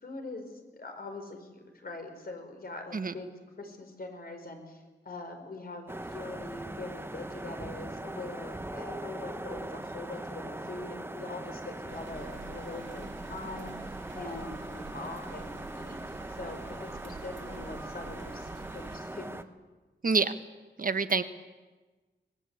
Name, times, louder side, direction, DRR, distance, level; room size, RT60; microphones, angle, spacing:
voice 1, 0.0-3.3 3.6-13.7 14.1-19.5, left 2 dB, 55° left, 5 dB, 4.8 m, -43 dB
sound 1, 5.9-19.4, right 1 dB, 10° right, 1.2 m, -40 dB
sound 2, 11.9-19.0, right 5 dB, 90° right, 2.2 m, -48 dB
voice 2, 20.0-20.3 20.8-21.2, right 4 dB, 50° right, 10 dB, 1.2 m, -26 dB
24.5 x 20.5 x 8.3 m, 1.3 s
wide cardioid pair, 110°, 19 cm